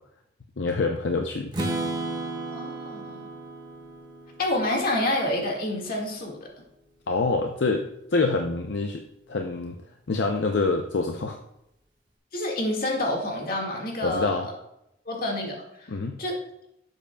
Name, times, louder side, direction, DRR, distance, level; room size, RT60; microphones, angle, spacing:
voice 1, 0.6-1.5 7.1-9.0 9.3-9.8 10.1-11.4 14.0-14.5 15.9-16.2, left 3 dB, 70° left, 4 dB, 0.6 m, -26 dB
Strum, 1.5-5.5, right 2 dB, 25° right, 1.4 m, -34 dB
voice 2, 2.5-3.3 4.4-6.5 12.3-14.5 15.1-15.9 16.2-16.4, left 1 dB, 55° left, 0 dB, 1.8 m, -28 dB
11.5 x 7.6 x 2.3 m, 0.83 s
head